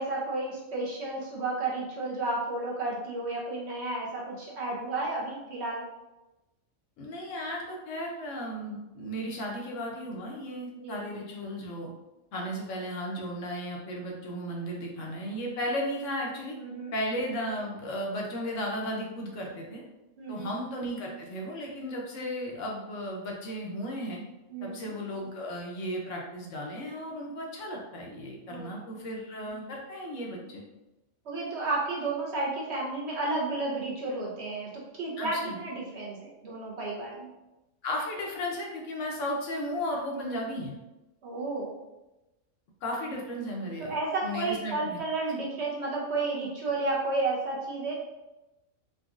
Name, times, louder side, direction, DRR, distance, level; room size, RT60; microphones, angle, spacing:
voice 1, 0.0-5.8 10.8-11.1 16.6-16.9 20.2-20.5 24.5-24.9 28.5-29.0 31.3-37.3 40.1-40.3 41.2-41.8 43.8-47.9, right 2 dB, 60° right, -4 dB, 0.9 m, -32 dB
voice 2, 7.0-11.9 12.3-16.6 16.9-19.8 20.3-24.2 24.6-30.6 35.2-35.6 37.8-40.8 42.8-44.0 44.2-45.0, equal, 70° left, -1 dB, 1.0 m, -35 dB
3.8 x 2.3 x 2.4 m, 1.0 s
omnidirectional pair, 1.5 m